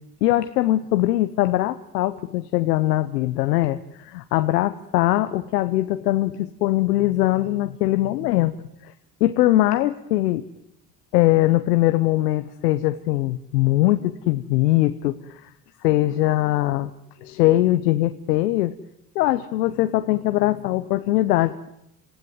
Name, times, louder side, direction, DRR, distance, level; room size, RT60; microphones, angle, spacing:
voice 1, 0.2-8.5 8.8-8.9 9.2-10.4 11.1-15.5 15.8-16.9 17.2-18.7 19.1-21.7, left 16 dB, 90° left, 11 dB, 0.9 m, -21 dB
26.5 x 16.5 x 9.3 m, 0.83 s
hypercardioid pair, 60°, 46 cm